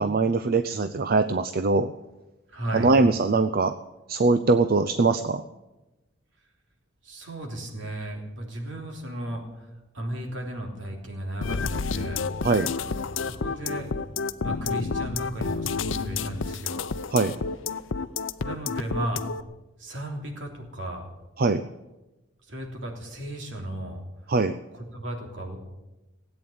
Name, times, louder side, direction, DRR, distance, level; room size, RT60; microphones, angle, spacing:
voice 1, 0.0-1.9 2.7-3.7 4.1-5.4 12.4-12.7 17.1-17.3 21.4-21.6 24.3-24.5, right 3 dB, 50° right, 12 dB, 0.5 m, -22 dB
voice 2, 2.5-2.9 7.0-9.4 9.9-12.2 13.2-13.9 14.4-16.9 18.4-19.2 19.8-21.1 22.5-24.0 24.7-25.6, right 1 dB, 70° right, 1 dB, 3.3 m, -35 dB
sound 1, 11.4-19.4, left 5 dB, 75° left, 0.6 m, -30 dB
17.5 x 9.0 x 8.6 m, 1.0 s
head